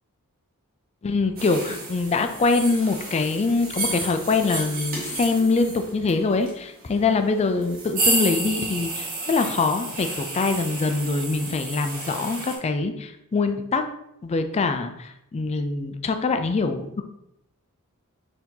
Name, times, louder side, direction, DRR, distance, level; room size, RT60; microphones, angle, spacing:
voice 1, 1.0-13.8 14.2-17.0, left 3 dB, 30° left, 7 dB, 0.3 m, -24 dB
sound 1, 1.4-12.6, right 2 dB, 40° right, 1.1 m, -31 dB
4.4 x 2.8 x 3.7 m, 0.80 s
head